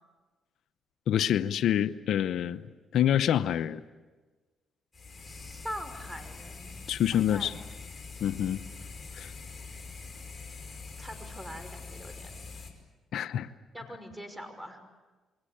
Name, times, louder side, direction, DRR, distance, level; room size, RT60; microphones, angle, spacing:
voice 1, 1.1-2.6 2.9-3.8 6.9-7.5 8.2-8.6 9.1-9.3 13.1-13.5, left 10 dB, 75° left, 11 dB, 0.8 m, -26 dB
sound 1, 4.9-12.7, left 4 dB, 25° left, 5.7 m, -44 dB
voice 2, 5.2-6.7 7.1-7.7 10.5-12.3 13.7-14.8, equal, 5° right, 8 dB, 5.5 m, -43 dB
28.5 x 22.5 x 8.7 m, 1.3 s
cardioid pair, 90°, 0 cm